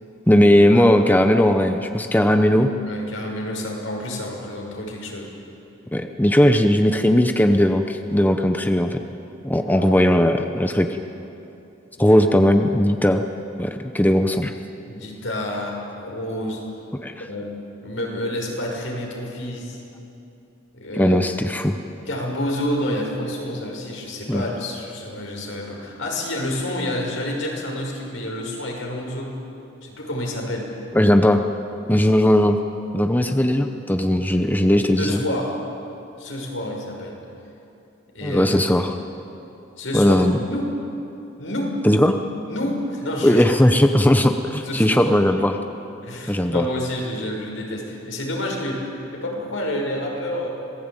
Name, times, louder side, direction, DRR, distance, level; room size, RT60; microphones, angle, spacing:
voice 1, 0.3-2.7 5.9-9.0 9.4-10.9 12.0-13.2 13.6-14.5 17.0-17.3 20.9-21.8 24.3-24.4 30.9-31.4 31.9-32.6 32.9-35.2 38.2-39.0 39.9-40.4 41.8-42.2 43.2-45.6 46.3-46.7, left 1 dB, 10° left, 6 dB, 0.9 m, -18 dB
voice 2, 2.9-5.3 9.6-9.9 14.9-16.6 17.2-17.5 17.8-19.8 20.7-21.2 22.1-29.3 29.8-30.7 35.0-35.5 36.2-37.2 38.1-38.4 39.8-40.2 40.5-40.7 41.4-41.7 42.5-43.8 44.6-45.1 45.4-45.5 46.0-48.8 49.1-50.5, left 1 dB, 75° left, 0 dB, 5.9 m, -29 dB
26.5 x 19.0 x 9.1 m, 2.8 s
head